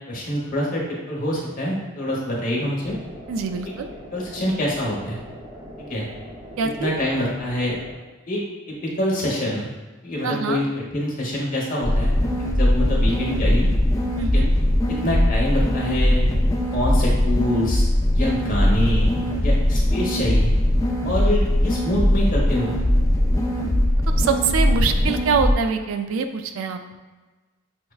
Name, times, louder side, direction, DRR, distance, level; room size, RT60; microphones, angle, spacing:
voice 1, 0.1-3.0 3.6-3.7 4.1-5.2 5.8-6.1 6.8-7.8 8.3-9.7 10.0-10.7 10.9-13.7 14.3-14.4 14.9-16.2 16.7-17.8 18.1-20.5 21.0-22.8 23.5-23.6, left 1 dB, 40° left, -4 dB, 0.9 m, -25 dB
sound 1, 2.8-7.9, equal, 20° right, 0.7 m, -41 dB
voice 2, 3.3-3.9 6.6-6.9 10.2-10.6 14.2-14.5 24.2-26.8, right 5 dB, 70° right, 7 dB, 0.3 m, -24 dB
sound 2, 11.8-25.5, left 1 dB, 15° left, 0.4 m, -20 dB
5.8 x 2.1 x 2.3 m, 1.3 s
head